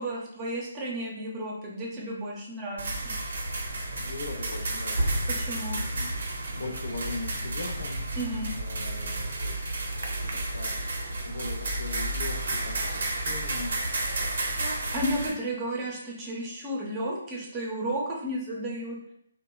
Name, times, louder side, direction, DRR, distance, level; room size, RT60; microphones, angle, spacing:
voice 1, 0.0-3.1 5.4-5.8 8.2-8.5 14.9-19.0, right 1 dB, 20° right, -3 dB, 0.7 m, -33 dB
sound 1, 2.8-15.3, right 2 dB, 60° right, 0.5 m, -31 dB
voice 2, 4.0-8.0 8.5-10.8 11.3-13.8 14.1-14.6, left 2 dB, 65° left, 1 dB, 0.5 m, -40 dB
2.8 x 2.1 x 2.3 m, 0.70 s
figure-of-eight pair, 140°, 0 cm